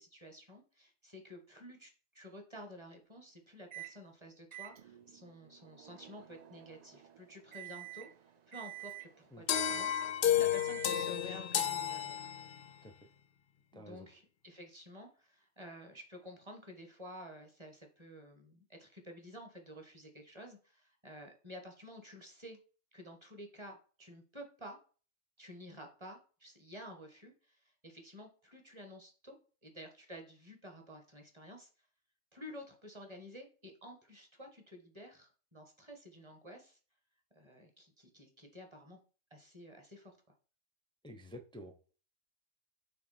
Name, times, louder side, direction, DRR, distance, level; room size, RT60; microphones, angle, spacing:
voice 1, 0.0-8.1 8.5-12.3 13.7-22.6 22.9-24.8 25.4-29.4 29.6-31.7 32.3-36.8 37.3-39.0 39.3-40.1, equal, 20° right, 3 dB, 1.3 m, -51 dB
Microwave oven, 3.7-4.0 4.5-11.3, right 15 dB, 65° right, 0.4 m, -50 dB
sound 1, 9.5-12.8, left 10 dB, 65° left, 0.5 m, -32 dB
voice 2, 13.7-14.1 41.0-41.9, equal, 10° left, 3 dB, 0.3 m, -50 dB
6.0 x 3.7 x 4.2 m, 0.37 s
omnidirectional pair, 1.4 m